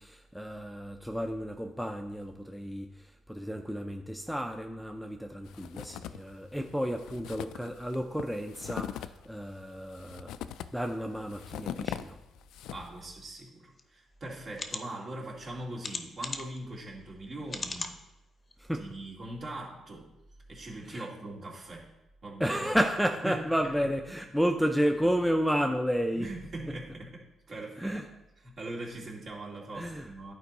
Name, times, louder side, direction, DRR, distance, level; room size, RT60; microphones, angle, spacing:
voice 1, 0.0-10.3 10.7-12.2 18.6-18.9 20.9-21.1 22.4-26.3 27.8-28.1 29.7-30.1, equal, ahead, 4 dB, 0.5 m, -31 dB
sound 1, 5.5-6.3 6.6-6.7 7.0-13.0, left 10 dB, 85° left, 0.3 m, -41 dB
voice 2, 12.7-18.0 18.8-20.1 20.5-21.9 22.2-22.7 23.2-23.4 26.2-27.9 28.4-30.3, right 2 dB, 50° right, -3 dB, 2.3 m, -41 dB
sound 2, 13.8-13.9 14.5-14.8 15.8-16.6 17.5-18.0 18.5-18.6 18.9-19.0, left 3 dB, 35° left, 0.7 m, -37 dB
10.5 x 4.5 x 4.1 m, 0.96 s
cardioid pair, 90°, 0 cm